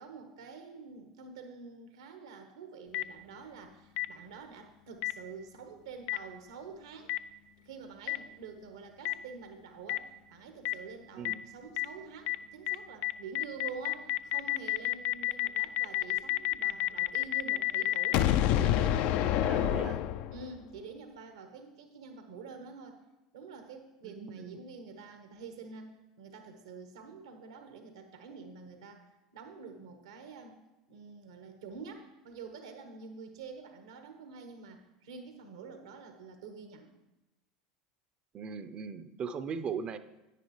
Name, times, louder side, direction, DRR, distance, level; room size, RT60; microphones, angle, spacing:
voice 1, 0.0-7.1 7.6-18.3 18.5-23.0 23.3-25.9 26.2-29.1 29.3-30.6 30.9-36.9, right 5 dB, 75° right, 5 dB, 1.2 m, -47 dB
Boom, 2.9-3.0 4.0-4.1 5.0-5.1 6.1-6.2 7.1-7.2 8.1-8.2 9.0-9.1 9.9-10.0 10.6-10.7 11.2-11.3 11.8-11.9 12.3-12.4 12.7-12.8 13.0-20.6, left 13 dB, 55° left, 0.4 m, -28 dB
voice 2, 19.4-20.0 24.0-24.6 38.3-40.0, right 6 dB, 40° right, 10 dB, 0.6 m, -39 dB
9.7 x 9.5 x 3.1 m, 0.99 s
hypercardioid pair, 80°, 3 cm